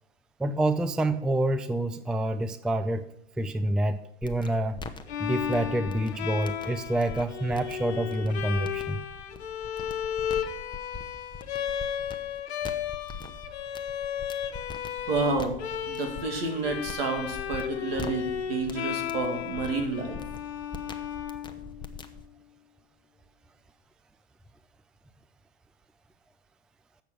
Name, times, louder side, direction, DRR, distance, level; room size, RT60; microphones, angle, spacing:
voice 1, 0.4-3.1 3.4-4.8 5.2-9.0, right 1 dB, ahead, 11 dB, 0.3 m, -27 dB
sound 1, 4.2-22.3, left 4 dB, 15° left, 0.8 m, -43 dB
Bowed string instrument, 5.1-22.0, left 9 dB, 85° left, 0.9 m, -34 dB
voice 2, 15.1-15.6 15.9-20.2, right 3 dB, 70° right, 4 dB, 2.2 m, -30 dB
8.1 x 6.0 x 6.2 m, 0.73 s
hypercardioid pair, 100°, 31 cm